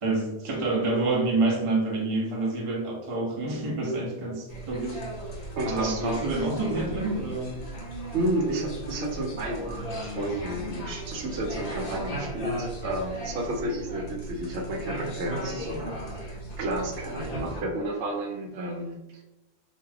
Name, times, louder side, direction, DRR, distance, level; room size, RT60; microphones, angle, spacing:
voice 1, 0.0-5.0 5.7-7.6, right 2 dB, 40° right, -1 dB, 0.5 m, -27 dB
sound 1, 4.5-17.6, right 1 dB, 45° left, 0.6 m, -37 dB
voice 2, 5.6-6.3 8.1-19.2, right 1 dB, 85° right, 2 dB, 0.9 m, -31 dB
2.4 x 2.3 x 3.2 m, 0.98 s
omnidirectional pair, 1.1 m